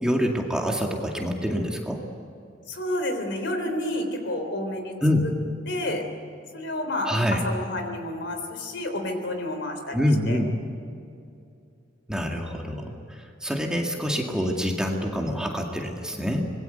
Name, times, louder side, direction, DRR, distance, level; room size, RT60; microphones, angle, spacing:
voice 1, 0.0-2.1 5.0-5.3 7.1-7.5 9.9-10.6 12.1-16.5, equal, 5° right, 0 dB, 2.1 m, -26 dB
voice 2, 2.7-4.9 5.7-6.0 6.5-7.1 7.4-10.0 10.3-10.4, left 1 dB, 65° left, 6 dB, 3.7 m, -30 dB
25.5 x 21.5 x 8.1 m, 2.5 s
head